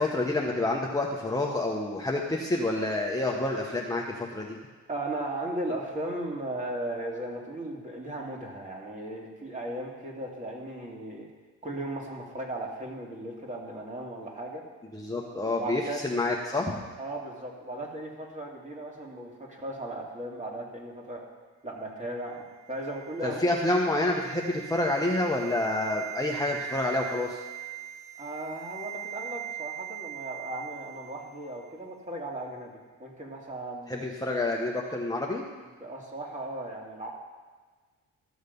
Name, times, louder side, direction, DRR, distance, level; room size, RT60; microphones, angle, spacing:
voice 1, 0.0-4.0 4.3-4.6 14.9-16.8 23.2-27.4 33.9-35.4, left 2 dB, 10° left, -2 dB, 1.1 m, -28 dB
voice 2, 4.9-11.3 11.6-14.6 15.1-16.0 17.0-21.2 21.6-22.4 22.7-23.5 28.2-34.1 35.7-37.1, right 1 dB, 25° right, -2 dB, 2.6 m, -36 dB
sound 1, 22.2-31.4 31.7-31.8, right 12 dB, 85° right, 2.9 m, -41 dB
13.5 x 6.5 x 5.4 m, 1.4 s
cardioid pair, 90°, 30 cm